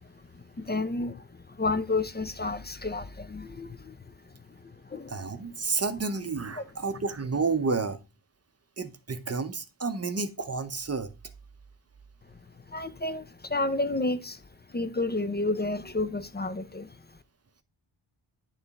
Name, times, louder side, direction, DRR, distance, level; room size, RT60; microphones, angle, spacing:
voice 1, 0.0-5.2 5.6-5.8 6.5-6.6 12.2-17.2, left 2 dB, 20° left, 0.4 m, -32 dB
voice 2, 5.1-8.0 8.8-11.1, right 4 dB, 30° right, 0.7 m, -30 dB
9.3 x 3.3 x 4.0 m
wide cardioid pair, 90°, 49 cm